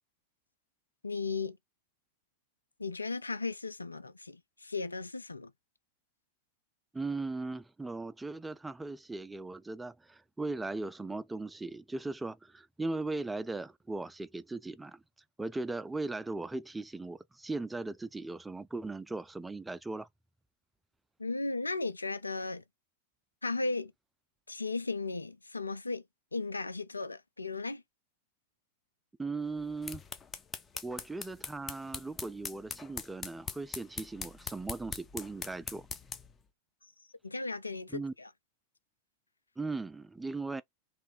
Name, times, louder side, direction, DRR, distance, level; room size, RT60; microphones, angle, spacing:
voice 1, 1.0-1.6 2.8-5.5 21.2-22.6 23.4-23.9 24.5-26.0 26.3-27.8 37.2-38.3, left 3 dB, 80° left, 0.4 m, -36 dB
voice 2, 6.9-15.0 15.4-20.1 29.2-30.0 30.8-35.9 37.9-38.1 39.6-40.6, right 3 dB, 10° right, 0.4 m, -38 dB
sound 1, 29.6-36.4, left 5 dB, 20° left, 0.7 m, -42 dB
3.2 x 3.1 x 4.3 m
figure-of-eight pair, 90°, 0 cm